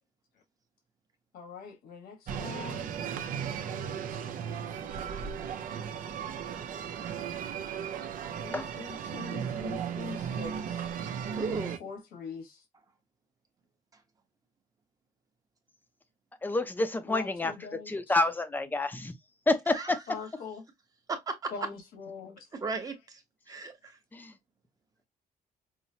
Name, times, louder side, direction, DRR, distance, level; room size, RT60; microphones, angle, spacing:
voice 1, 1.3-2.9 8.4-10.9 11.5-12.6 17.1-18.2 20.1-20.6 21.5-22.5, left 5 dB, 85° left, 1.3 m, -43 dB
sound 1, 2.3-11.8, right 8 dB, 65° right, 0.6 m, -36 dB
voice 2, 11.4-11.8 19.7-20.0 21.1-21.5 22.5-23.2 23.5-24.0, right 4 dB, 25° right, 1.0 m, -35 dB
voice 3, 16.4-17.5 17.9-19.1 19.5-20.0 24.1-24.3, left 2 dB, 10° left, 0.5 m, -28 dB
5.5 x 2.1 x 2.8 m
cardioid pair, 160°, 15 cm